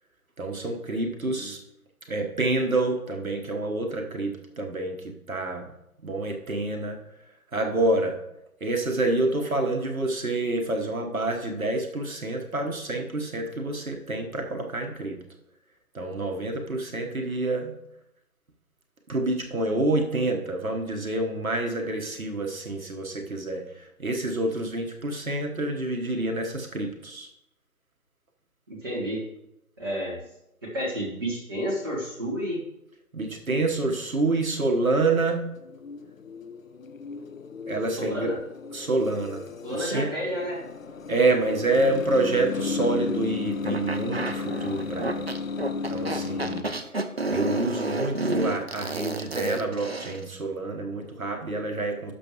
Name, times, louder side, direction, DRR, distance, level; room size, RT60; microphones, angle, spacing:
voice 1, 0.4-1.6 2.1-5.7 6.0-7.0 7.5-8.2 8.6-15.2 15.9-17.7 19.1-27.3 33.1-35.4 37.7-38.3 38.7-40.1 41.1-45.3 45.9-46.7 47.3-52.1, right 2 dB, 65° right, 3 dB, 1.3 m, -27 dB
voice 2, 28.7-29.2 29.8-30.2 30.6-32.6 37.9-38.4 39.6-40.7, equal, 15° right, -6 dB, 1.4 m, -31 dB
sound 1, 35.0-46.6, left 4 dB, 60° left, 0.6 m, -34 dB
sound 2, 43.7-50.2, right 2 dB, 45° right, 0.5 m, -30 dB
12.0 x 6.5 x 3.0 m, 0.83 s
figure-of-eight pair, 155°, 45 cm